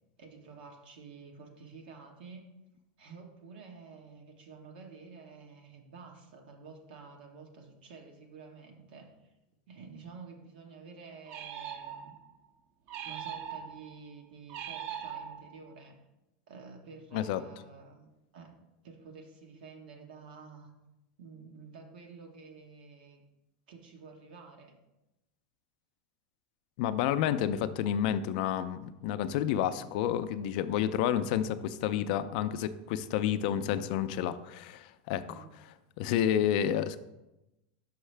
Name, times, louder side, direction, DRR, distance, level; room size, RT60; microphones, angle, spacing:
voice 1, 0.2-2.5 3.0-9.1 9.7-12.1 13.0-16.0 16.5-18.5 18.8-20.7 21.2-23.2 23.7-24.8 35.3-35.6, right 4 dB, 85° right, 2 dB, 1.1 m, -50 dB
sound 1, 11.3-12.3 12.9-13.9 14.5-15.7, right 9 dB, 45° right, 0.5 m, -41 dB
voice 2, 26.8-35.4 36.0-37.0, left 10 dB, 65° left, 12 dB, 0.4 m, -30 dB
5.6 x 5.4 x 3.3 m, 0.95 s
supercardioid pair, 135°, 5 cm